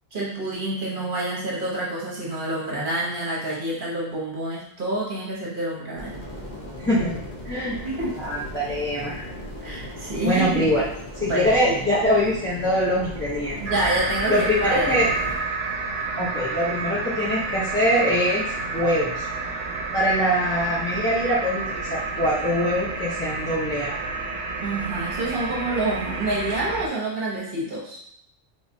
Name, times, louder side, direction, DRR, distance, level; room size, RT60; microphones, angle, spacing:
voice 1, 0.1-6.2 7.8-8.1 9.6-10.7 11.2-11.9 13.6-15.1 24.6-28.0, right 2 dB, 50° right, -5 dB, 1.1 m, -27 dB
sound 1, 5.9-15.4, left 1 dB, 45° left, 0.9 m, -37 dB
voice 2, 6.8-7.8 8.2-9.2 10.2-10.8 11.2-13.6 14.3-15.1 16.2-19.3 19.9-23.9, equal, 15° left, -9 dB, 0.6 m, -23 dB
sound 2, 13.7-26.9, right 3 dB, 80° right, 0.9 m, -30 dB
3.5 x 3.1 x 2.6 m, 0.74 s
omnidirectional pair, 1.2 m